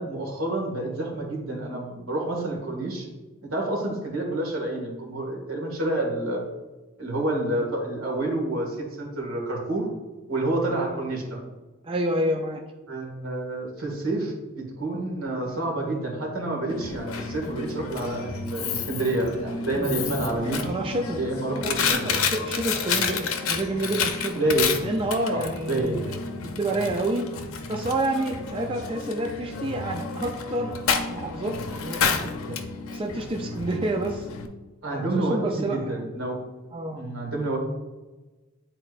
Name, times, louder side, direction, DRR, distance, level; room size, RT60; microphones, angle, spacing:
voice 1, 0.0-3.1 3.5-6.4 7.0-9.9 10.3-11.4 12.9-20.7 21.1-22.1 24.4-24.8 25.3-26.0 34.8-36.4 36.9-37.6, right 2 dB, 75° right, 0 dB, 1.8 m, -28 dB
voice 2, 11.8-12.6 19.8-20.0 20.6-21.2 21.6-24.4 24.8-27.3 27.7-30.7 31.1-32.6 32.9-34.3 34.9-36.1 36.7-37.0, right 1 dB, 25° right, 2 dB, 0.4 m, -29 dB
Coin (dropping), 16.7-34.5, left 5 dB, 80° left, 0.6 m, -30 dB
9.5 x 4.3 x 2.5 m, 1.2 s
head